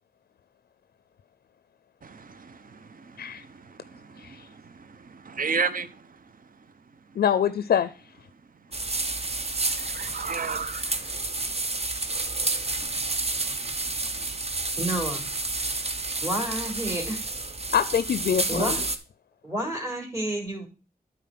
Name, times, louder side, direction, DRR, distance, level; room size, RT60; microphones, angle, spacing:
voice 1, 2.0-6.2 9.7-11.1, right 5 dB, 65° right, 0.7 m, -34 dB
voice 2, 7.2-7.9 17.7-18.8, left 8 dB, 80° left, 0.4 m, -24 dB
sound 1, 8.7-19.0, right 2 dB, 40° right, 1.0 m, -30 dB
voice 3, 14.8-15.3 16.2-17.2 18.5-18.8 19.4-20.7, right 1 dB, 20° right, 3.5 m, -30 dB
9.2 x 4.0 x 5.7 m
cardioid pair, 50°, 16 cm